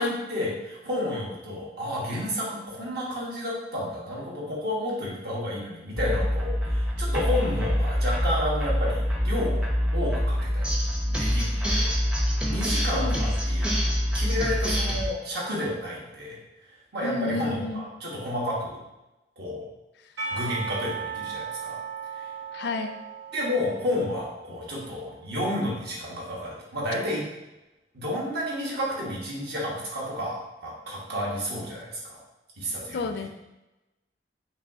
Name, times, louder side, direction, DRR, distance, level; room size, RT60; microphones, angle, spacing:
voice 1, 0.0-9.7 9.9-11.9 12.4-13.8 14.1-16.4 16.9-18.8 19.4-19.6 20.3-21.8 22.1-22.3 23.3-27.3 27.9-32.2 32.6-33.1, left 1 dB, 60° right, -4 dB, 1.2 m, -31 dB
sound 1, 6.0-15.1, equal, 5° right, 0.5 m, -25 dB
voice 2, 12.9-13.2 17.0-17.9 22.5-23.0 32.9-33.3, left 3 dB, 60° left, 7 dB, 0.4 m, -31 dB
Percussion / Church bell, 20.2-25.0, right 5 dB, 80° right, 1.3 m, -37 dB
5.4 x 2.8 x 2.7 m, 1.0 s
head